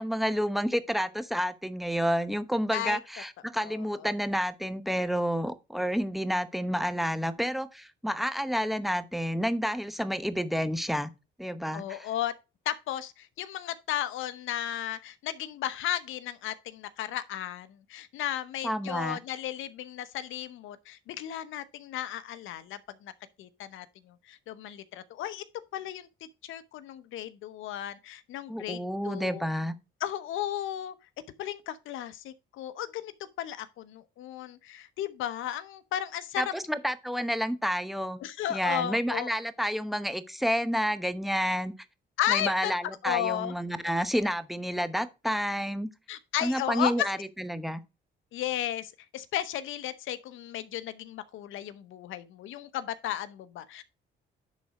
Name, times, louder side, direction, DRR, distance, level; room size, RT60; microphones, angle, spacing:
voice 1, 0.0-11.1 11.4-12.1 18.6-19.2 28.5-29.7 36.4-38.2 38.5-41.7 42.3-45.9 46.4-47.8, equal, ahead, 0.9 m, -30 dB
voice 2, 3.6-4.1 11.7-12.3 12.7-23.1 23.4-23.9 24.3-25.4 25.7-26.1 26.4-28.8 29.0-29.5 30.0-30.9 31.4-33.1 33.4-36.5 38.2-39.3 42.2-43.5 46.1-47.1 48.3-53.8, left 12 dB, 85° left, 0.9 m, -34 dB
10.5 x 4.1 x 4.9 m
cardioid pair, 90°, 20 cm